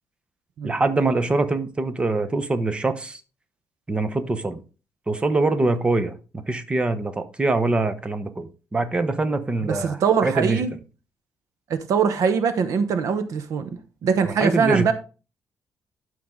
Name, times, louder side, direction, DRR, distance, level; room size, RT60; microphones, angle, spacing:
voice 1, 0.6-3.2 3.9-4.6 5.1-10.6 14.3-14.9, right 2 dB, 20° right, 0.8 m, -24 dB
voice 2, 9.6-10.7 11.7-13.7 14.0-14.9, right 6 dB, 75° right, 0.9 m, -22 dB
12.0 x 4.7 x 3.7 m
wide cardioid pair, 160°, 6 cm